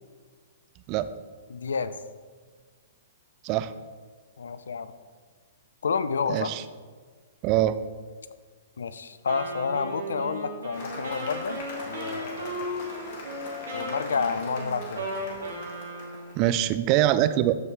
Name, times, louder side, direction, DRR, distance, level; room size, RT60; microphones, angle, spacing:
voice 1, 1.5-1.9 4.4-4.9 5.8-6.5 8.8-12.7 13.7-15.1, left 5 dB, 75° left, 14 dB, 0.4 m, -30 dB
voice 2, 6.3-6.6 7.4-7.8 16.4-17.6, right 13 dB, 40° right, 13 dB, 0.4 m, -23 dB
Wind instrument woodwind instrument, 9.3-16.4, right 1 dB, 75° right, 2.2 m, -36 dB
Cheering / Applause, 10.7-16.5, left 2 dB, 50° left, 1.9 m, -41 dB
13.5 x 4.8 x 3.3 m, 1.5 s
hypercardioid pair, 115°, 0 cm